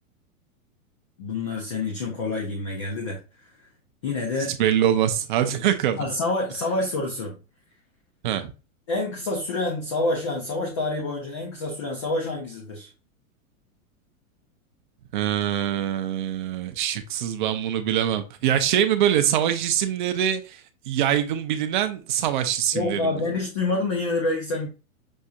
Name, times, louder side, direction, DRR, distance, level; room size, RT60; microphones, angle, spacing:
voice 1, 1.2-3.2 4.0-4.5 6.0-7.4 8.9-12.9 22.7-24.7, left 2 dB, 25° left, 0.4 m, -27 dB
voice 2, 4.5-6.0 8.2-8.5 15.1-20.6 20.9-23.0, right 10 dB, 35° right, 0.5 m, -24 dB
6.2 x 2.7 x 2.2 m
supercardioid pair, 170°, 42 cm